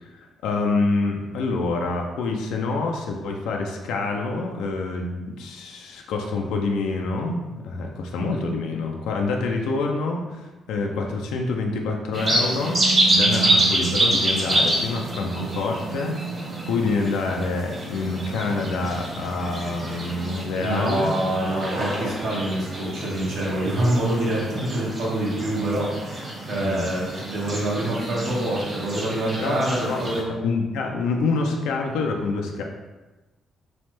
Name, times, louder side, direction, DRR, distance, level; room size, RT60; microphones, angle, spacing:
voice 1, 0.0-12.8 13.1-21.1 26.6-26.9 29.4-29.6 29.8-30.1 30.4-32.6, left 3 dB, 90° left, 1 dB, 0.3 m, -27 dB
sound 1, 12.1-30.2, right 1 dB, 35° right, 1.0 m, -27 dB
voice 2, 20.6-30.4, right 1 dB, 75° right, -5 dB, 0.9 m, -26 dB
3.1 x 2.1 x 3.0 m, 1.1 s
cardioid pair, 90°, 0 cm